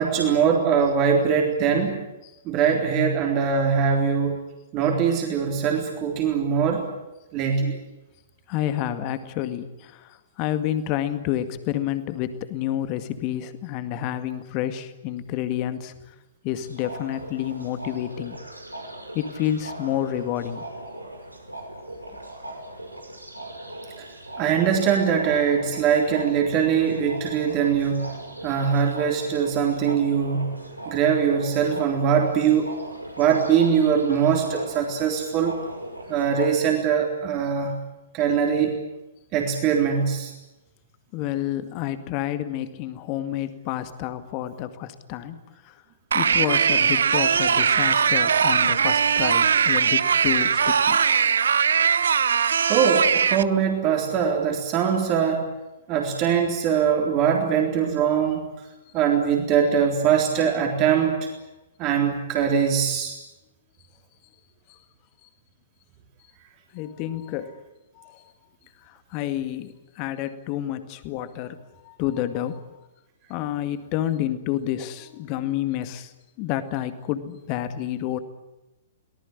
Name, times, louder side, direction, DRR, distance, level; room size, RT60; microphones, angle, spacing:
voice 1, 0.0-2.0 2.4-4.4 4.7-6.9 7.3-7.8 24.4-28.1 28.4-30.6 30.9-32.7 33.2-35.6 36.1-37.7 38.1-38.8 39.3-40.3 52.7-55.5 55.9-58.4 58.9-61.2 61.8-63.2, right 7 dB, 30° right, 1 dB, 3.8 m, -22 dB
voice 2, 8.5-16.1 16.4-18.4 19.1-20.6 41.1-45.8 46.1-51.0 58.9-59.0 64.7-64.8 65.2-65.3 66.7-67.6 67.9-68.2 68.8-72.7 73.3-78.2, left 12 dB, 35° left, 10 dB, 2.1 m, -29 dB
sound 1, 16.6-36.5, right 1 dB, 90° right, 5.3 m, -39 dB
sound 2, 46.1-53.4, right 7 dB, 60° right, 0.8 m, -20 dB
24.0 x 19.0 x 9.8 m, 0.99 s
figure-of-eight pair, 115°, 0 cm